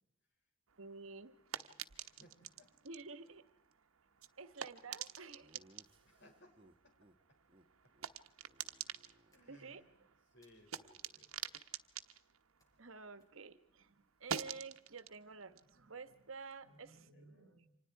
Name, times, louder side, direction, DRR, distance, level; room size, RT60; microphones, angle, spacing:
sound 1, 0.7-13.5 13.8-17.0, right 8 dB, 85° right, 1.0 m, -49 dB
voice 1, 0.8-1.8 2.8-3.4 4.4-5.6 9.5-9.8 12.8-17.8, right 4 dB, 70° right, 12 dB, 1.4 m, -51 dB
voice 2, 2.0-2.7 4.2-4.4 4.9-5.0 6.0-6.6 6.8-6.9 9.3-9.9 10.3-11.4 17.1-17.7, left 1 dB, 60° left, 3 dB, 6.1 m, -64 dB
Laughter, 5.4-7.2 7.5-7.7 7.9-8.1 8.4-10.0, right 1 dB, 25° right, 1.1 m, -67 dB
sound 2, 9.3-9.9 10.4-11.0 12.6-12.9 13.2-13.6 14.3-15.0, equal, 15° left, 5.3 m, -77 dB
29.5 x 25.5 x 4.7 m, 0.72 s
head